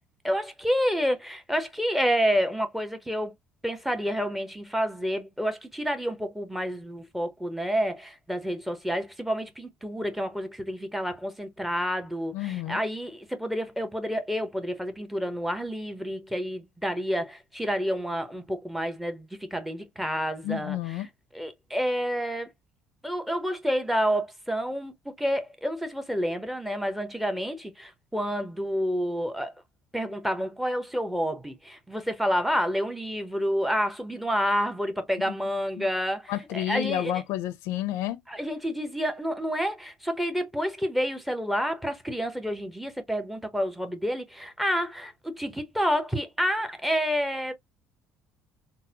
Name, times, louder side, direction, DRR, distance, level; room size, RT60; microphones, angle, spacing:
voice 1, 0.2-3.3 3.6-20.8 21.3-22.5 23.0-29.5 29.9-37.1 38.3-47.5, equal, 5° right, 0.8 m, -29 dB
voice 2, 12.3-12.8 20.4-21.1 35.3-35.4 35.8-35.9 36.3-38.2, left 13 dB, 80° left, 0.6 m, -30 dB
3.9 x 2.1 x 2.8 m
cardioid pair, 125°, 5 cm